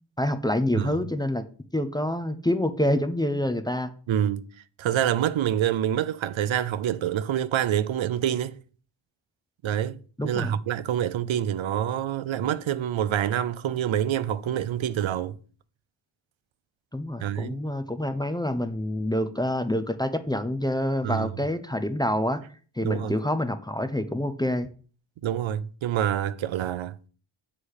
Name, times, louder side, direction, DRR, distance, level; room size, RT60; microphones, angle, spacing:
voice 1, 0.2-1.4 1.7-3.9 10.2-10.5 16.9-22.4 22.8-24.7, left 1 dB, 10° left, 0.5 m, -27 dB
voice 2, 4.1-4.4 4.8-8.6 9.6-10.0 10.2-15.4 17.2-17.6 21.0-21.3 22.8-23.1 25.2-27.0, right 10 dB, 85° right, 0.6 m, -26 dB
7.4 x 3.3 x 6.3 m
wide cardioid pair, 140°, 46 cm